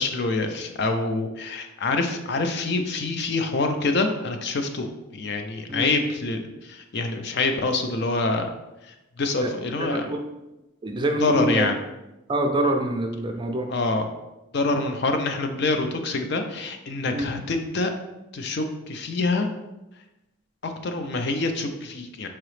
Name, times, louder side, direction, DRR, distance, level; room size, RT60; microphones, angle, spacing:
voice 1, 0.0-8.5 8.8-10.0 11.2-11.7 13.7-14.1 14.5-17.9 18.3-19.5 20.6-22.3, left 3 dB, 55° left, 6 dB, 0.4 m, -26 dB
voice 2, 9.8-10.3 10.8-11.7 12.3-13.7 17.1-17.3, right 1 dB, 25° right, 3 dB, 0.3 m, -25 dB
4.7 x 3.0 x 3.1 m, 0.97 s
head